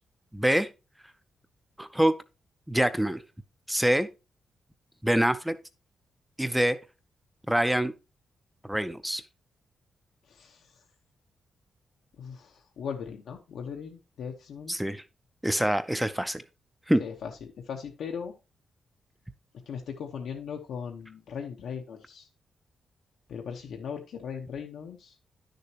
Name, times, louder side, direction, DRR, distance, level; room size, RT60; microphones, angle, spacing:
voice 1, 0.3-0.7 1.8-2.1 2.7-3.2 3.7-4.1 5.0-5.5 6.4-6.8 7.5-7.9 8.6-9.2 14.7-15.0 15.4-16.4 16.9-17.0, right 1 dB, 5° right, 0.4 m, -25 dB
voice 2, 10.3-10.7 12.2-14.8 17.0-17.3 17.6-18.3 19.7-22.3 23.3-25.2, left 7 dB, 80° left, 1.1 m, -38 dB
10.5 x 6.6 x 2.9 m
wide cardioid pair, 175°, 0 cm